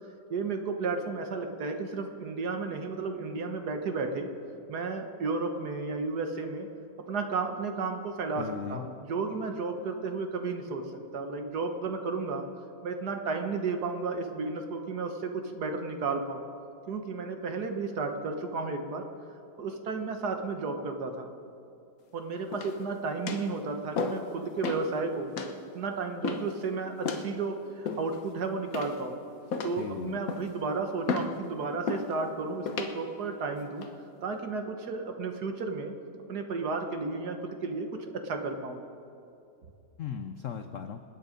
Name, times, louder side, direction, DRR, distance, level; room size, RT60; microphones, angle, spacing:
voice 1, 0.3-4.3 4.7-6.7 7.1-10.9 11.1-12.5 12.8-16.4 16.9-19.0 19.6-21.3 22.1-25.3 25.7-29.2 29.6-33.9 34.2-35.9 36.3-38.8, right 4 dB, 60° right, 5 dB, 1.6 m, -33 dB
voice 2, 8.4-8.9 29.8-30.2 40.0-41.0, left 7 dB, 75° left, 8 dB, 0.7 m, -37 dB
sound 1, 22.5-22.9 23.3-23.5 24.0-24.3 24.6-24.9 25.4-25.6 26.2-26.6 27.0-27.3 27.9-28.3 28.7-29.1 29.5-29.9 30.3-30.6 31.1-31.4 31.9-32.1 32.7-32.9 33.6-33.9, left 4 dB, 55° left, 1.3 m, -33 dB
26.5 x 9.1 x 5.1 m, 2.6 s
omnidirectional pair, 2.1 m